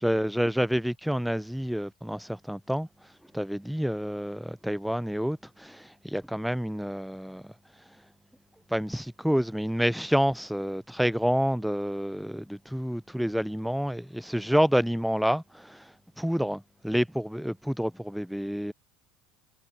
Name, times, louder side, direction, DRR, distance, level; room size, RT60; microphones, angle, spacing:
voice 1, 0.0-2.9 3.3-7.5 8.7-18.7, equal, ahead, 3.9 m, -28 dB
hypercardioid pair, 80°, 0 cm